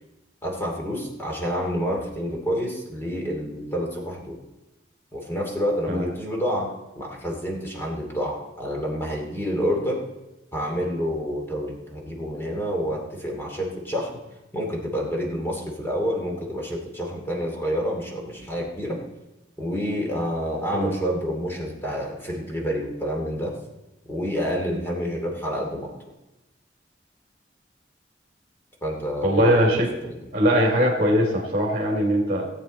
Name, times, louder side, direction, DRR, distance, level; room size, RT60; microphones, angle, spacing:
voice 1, 0.4-4.4 5.1-10.0 10.5-14.2 14.5-19.0 19.6-23.6 24.1-25.9 28.8-29.6 30.0-30.2, equal, 15° left, -1 dB, 2.4 m, -28 dB
voice 2, 29.2-29.9 30.3-32.5, equal, 35° right, -2 dB, 2.5 m, -21 dB
17.5 x 8.4 x 4.1 m, 1.0 s
head